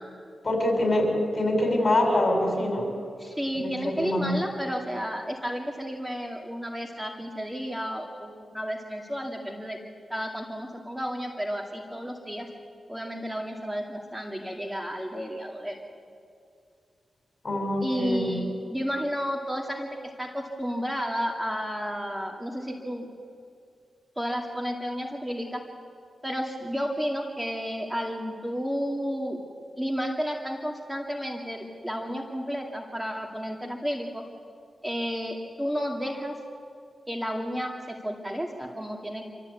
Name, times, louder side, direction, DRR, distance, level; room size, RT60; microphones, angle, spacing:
voice 1, 0.4-2.9 3.5-4.4 17.4-18.3, left 1 dB, 45° left, 2 dB, 6.3 m, -25 dB
voice 2, 3.2-9.8 10.1-12.5 12.9-15.8 17.8-19.9 20.2-23.1 24.2-25.6 26.2-29.4 29.8-34.2 34.8-36.3 37.1-39.2, equal, 10° right, 1 dB, 2.4 m, -32 dB
26.5 x 13.5 x 8.4 m, 2.4 s
cardioid pair, 55°, 0 cm